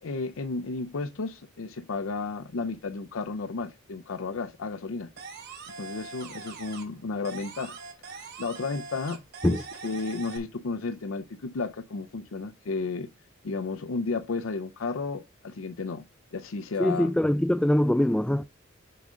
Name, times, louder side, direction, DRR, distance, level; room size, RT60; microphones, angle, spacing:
voice 1, 0.0-5.1 5.8-7.8 8.0-13.1 13.4-16.0 16.3-17.1, left 4 dB, 80° left, 0.6 m, -33 dB
sound 1, 5.2-7.0 7.2-10.4, right 4 dB, 55° right, 2.8 m, -42 dB
voice 2, 16.8-18.4, left 1 dB, 5° left, 0.4 m, -23 dB
6.9 x 6.2 x 3.7 m
head